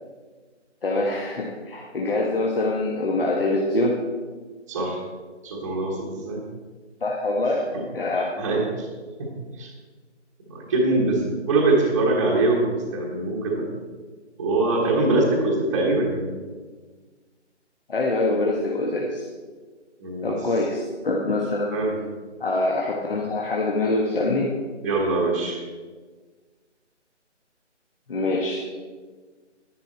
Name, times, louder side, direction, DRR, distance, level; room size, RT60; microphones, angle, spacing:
voice 1, 0.8-3.9 7.0-7.7 7.9-8.3 17.9-19.3 20.2-21.7 22.4-24.5 28.1-28.8, left 2 dB, 50° left, -2 dB, 1.5 m, -24 dB
voice 2, 4.7-5.0 5.4-6.4 8.4-8.9 9.2-9.3 9.6-9.7 10.5-13.6 14.4-16.2 20.0-20.4 21.7-21.9 24.8-25.6, right 2 dB, 15° right, -3 dB, 1.2 m, -23 dB
10.5 x 10.5 x 4.4 m, 1.4 s
figure-of-eight pair, 160°, 36 cm